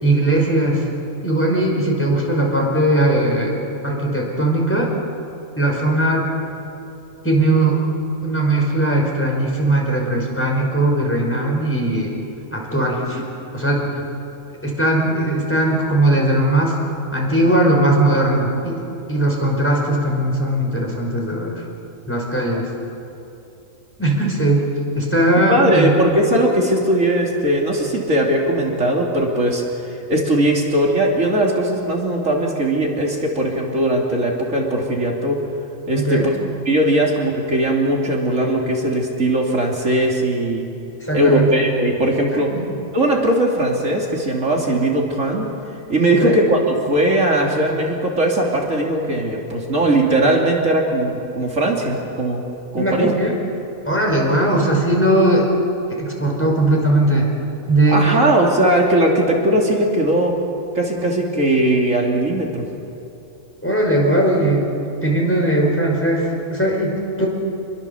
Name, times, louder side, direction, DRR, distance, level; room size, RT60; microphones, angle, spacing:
voice 1, 0.0-0.8 1.2-3.5 3.8-4.9 5.6-6.3 7.2-7.8 8.2-12.1 12.5-13.2 13.5-14.0 14.6-16.8 17.1-21.6 22.1-22.7 24.0-25.9 35.9-36.3 41.0-41.6 42.5-42.7 46.1-46.3 52.8-53.3 53.9-55.5 55.9-57.3 57.7-58.2 63.6-64.7 65.0-67.3, right 1 dB, 10° left, -2 dB, 5.1 m, -19 dB
voice 2, 25.5-29.6 30.1-35.4 35.9-36.3 36.7-40.7 41.1-42.5 42.9-45.5 45.9-52.4 52.7-53.1 57.9-60.3 60.7-62.6, right 1 dB, 65° right, -1 dB, 3.2 m, -19 dB
27.5 x 22.5 x 7.1 m, 2.8 s
omnidirectional pair, 1.4 m